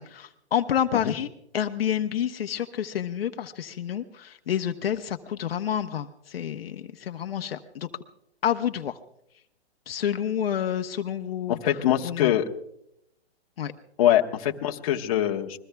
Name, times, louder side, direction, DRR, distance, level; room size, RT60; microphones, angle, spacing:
voice 1, 0.0-7.9 8.4-9.0 9.9-11.6 12.0-12.3 13.6-13.7, left 9 dB, 60° left, 7 dB, 1.0 m, -29 dB
voice 2, 11.5-12.5 14.0-15.6, left 11 dB, 35° left, 2 dB, 1.2 m, -23 dB
28.5 x 21.5 x 2.3 m, 0.77 s
hypercardioid pair, 160°, 33 cm